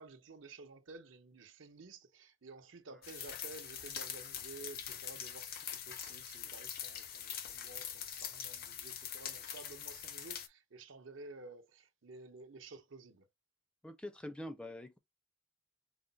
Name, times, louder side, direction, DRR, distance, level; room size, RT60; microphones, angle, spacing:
voice 1, 0.0-13.3, right 3 dB, 75° right, 0.7 m, -53 dB
sound 1, 3.0-10.5, left 9 dB, 50° left, 0.6 m, -44 dB
voice 2, 13.8-15.0, left 1 dB, 5° left, 0.4 m, -45 dB
4.9 x 2.1 x 3.9 m
head